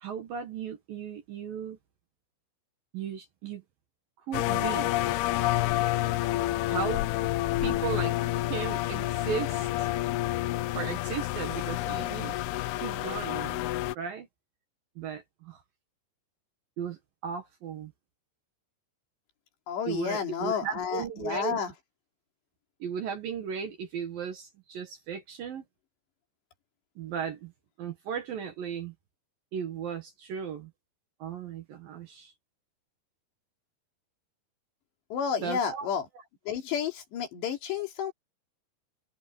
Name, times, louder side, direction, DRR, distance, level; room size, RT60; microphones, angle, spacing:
voice 1, 0.0-1.8 2.9-3.6 4.3-5.0 6.7-7.0 7.6-8.1 8.5-9.9 10.7-12.4 12.8-13.6 14.0-14.3 15.0-15.6 16.8-17.9 19.9-21.6 22.8-25.6 27.0-27.5 27.8-28.9 29.5-30.7 31.2-32.3 35.4-35.9, right 7 dB, 60° right, 2.7 m, -36 dB
sound 1, 4.3-13.9, left 16 dB, 85° left, 2.2 m, -29 dB
voice 2, 19.7-21.7 35.1-36.1 36.5-38.1, left 7 dB, 65° left, 5.2 m, -31 dB
omnidirectional pair, 5.4 m